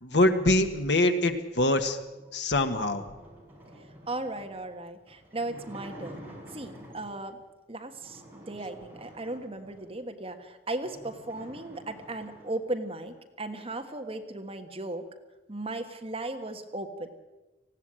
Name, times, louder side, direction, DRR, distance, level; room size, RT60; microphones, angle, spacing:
voice 1, 0.0-2.0 2.3-3.0, left 1 dB, 75° left, 8 dB, 1.6 m, -24 dB
sound 1, 2.1-7.3 7.9-9.9 10.4-10.5 10.7-12.6, equal, 10° right, 5.1 m, -49 dB
voice 2, 4.1-6.2 6.5-7.4 7.7-15.1 15.5-17.1, right 2 dB, 35° right, 5 dB, 1.6 m, -36 dB
19.5 x 15.5 x 8.9 m, 1.1 s
head